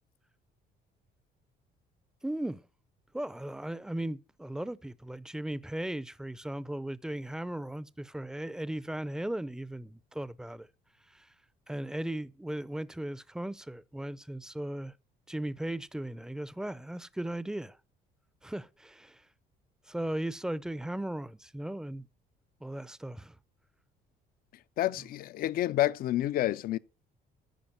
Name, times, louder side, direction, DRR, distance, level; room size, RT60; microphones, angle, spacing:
voice 1, 2.2-2.6 3.1-10.7 11.1-11.3 11.7-14.9 15.3-17.8 18.4-19.2 19.9-22.1 22.6-23.4, right 1 dB, 5° right, 0.5 m, -37 dB
voice 2, 24.8-26.8, left 14 dB, 60° left, 0.5 m, -29 dB
14.0 x 5.0 x 6.0 m
cardioid pair, 110°, 17 cm